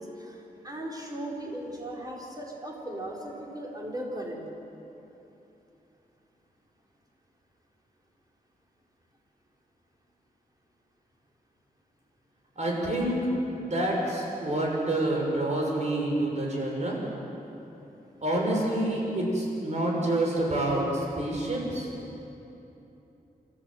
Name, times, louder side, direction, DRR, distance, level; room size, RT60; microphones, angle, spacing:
voice 1, 0.0-4.4, right 1 dB, 25° right, -3 dB, 4.6 m, -37 dB
voice 2, 12.6-13.2 13.6-17.0 18.2-21.9, right 1 dB, 50° right, -2 dB, 6.3 m, -27 dB
28.0 x 14.0 x 8.0 m, 3.0 s
wide cardioid pair, 95°, 15 cm